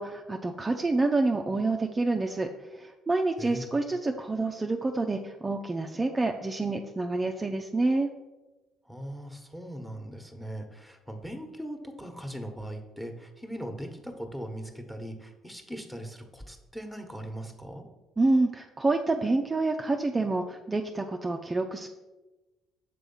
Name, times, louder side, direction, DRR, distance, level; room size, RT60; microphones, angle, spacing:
voice 1, 0.0-8.1 18.2-21.9, right 2 dB, 25° right, 3 dB, 0.5 m, -28 dB
voice 2, 3.4-3.7 8.8-17.8, equal, 5° left, 5 dB, 1.3 m, -40 dB
6.7 x 3.4 x 5.5 m, 1.1 s
hypercardioid pair, 60°, 0 cm